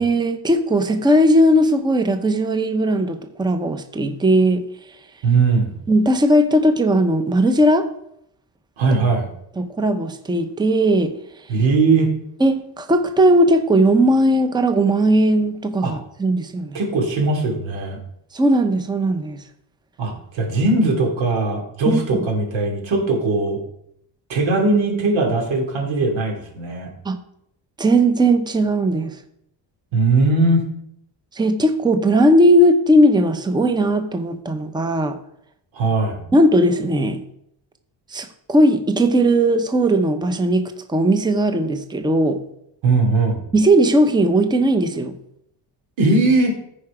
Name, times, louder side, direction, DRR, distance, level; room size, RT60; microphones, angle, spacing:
voice 1, 0.0-4.6 5.9-7.9 9.6-11.1 12.4-16.8 18.3-19.4 21.9-22.0 27.0-27.2 27.8-29.1 31.4-35.2 36.3-37.2 38.1-42.4 43.5-45.1, right 1 dB, 10° right, 8 dB, 0.6 m, -17 dB
voice 2, 5.2-5.7 8.8-9.3 11.5-12.1 15.8-15.9 16.7-18.0 20.0-23.6 24.3-26.9 29.9-30.7 35.7-36.2 42.8-43.4 46.0-46.5, right 3 dB, 85° right, 1 dB, 2.9 m, -19 dB
14.0 x 4.9 x 4.9 m, 0.75 s
cardioid pair, 145°, 45 cm